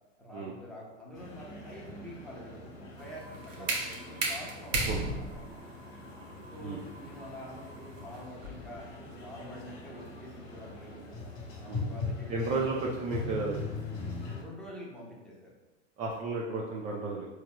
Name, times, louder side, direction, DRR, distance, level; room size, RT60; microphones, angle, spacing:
voice 1, 0.2-5.6 6.5-11.0 11.6-12.7 14.4-15.5, equal, ahead, -5 dB, 0.8 m, -47 dB
sound 1, 1.1-14.4, left 3 dB, 35° left, 1.2 m, -41 dB
sound 2, 3.0-8.8, right 2 dB, 75° right, 0.9 m, -35 dB
voice 2, 12.3-13.6 16.0-17.3, right 3 dB, 20° right, -3 dB, 0.4 m, -33 dB
4.5 x 3.1 x 2.2 m, 1.1 s
hypercardioid pair, 100°, 38 cm